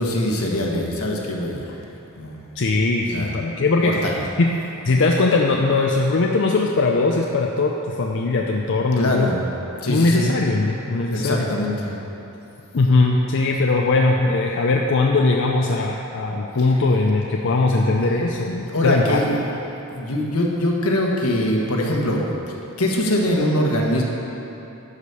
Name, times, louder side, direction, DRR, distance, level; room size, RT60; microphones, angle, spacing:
voice 1, 0.0-1.8 2.2-2.4 3.1-3.3 3.8-4.2 9.0-9.5 9.7-10.3 11.1-12.0 16.6-16.7 18.7-19.3 19.9-22.4 22.8-24.0, left 1 dB, 80° left, -1 dB, 1.5 m, -22 dB
voice 2, 2.6-4.0 4.4-4.5 4.8-9.3 9.9-11.5 12.7-19.2, left 3 dB, 55° left, 0 dB, 0.5 m, -20 dB
11.5 x 5.1 x 6.8 m, 3.0 s
head